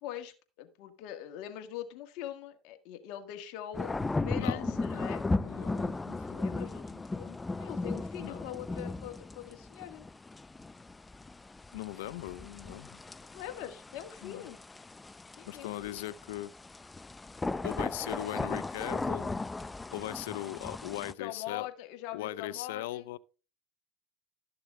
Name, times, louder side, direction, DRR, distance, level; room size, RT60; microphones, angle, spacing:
voice 1, 0.0-5.3 6.1-10.0 13.3-14.6 15.4-16.0 21.2-23.1, left 12 dB, 70° left, 1.6 m, -43 dB
sound 1, 3.7-21.1, left 3 dB, 15° left, 0.4 m, -36 dB
voice 2, 4.4-6.1 8.2-8.4 11.7-12.9 14.2-14.4 15.5-16.5 17.6-19.4 19.9-21.7 22.1-23.2, left 15 dB, 85° left, 0.5 m, -39 dB
13.0 x 6.7 x 3.6 m
supercardioid pair, 95°, 0 cm